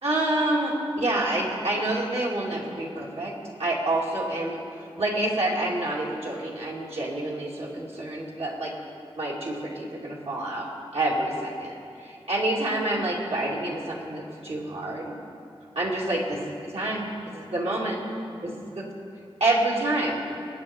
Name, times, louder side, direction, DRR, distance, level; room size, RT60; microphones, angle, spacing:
voice 1, 0.0-3.3 3.6-4.6 5.0-8.7 9.2-15.1 15.7-18.0 18.4-18.8 19.4-20.2, right 1 dB, 85° right, -4 dB, 2.5 m, -28 dB
23.0 x 9.4 x 4.5 m, 2.6 s
wide cardioid pair, 75°, 10 cm